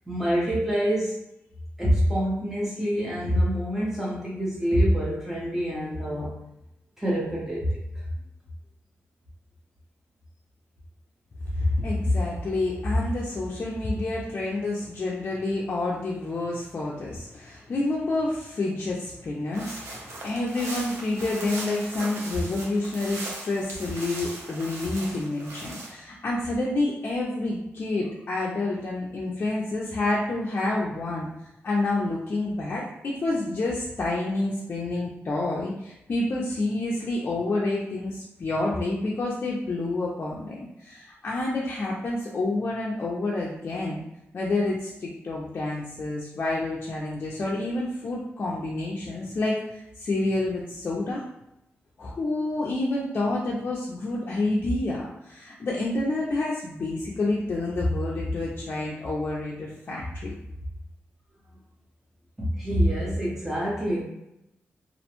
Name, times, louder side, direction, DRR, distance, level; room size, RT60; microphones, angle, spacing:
voice 1, 0.1-1.2 1.8-6.4 7.0-7.7 62.4-64.0, equal, 10° right, -6 dB, 0.6 m, -25 dB
voice 2, 11.5-31.3 31.6-44.0 44.3-51.2 52.0-60.3, left 2 dB, 45° left, -5 dB, 0.4 m, -28 dB
sound 1, 19.5-25.9, right 2 dB, 90° right, 0.6 m, -39 dB
2.4 x 2.1 x 2.9 m, 0.86 s
wide cardioid pair, 135°, 5 cm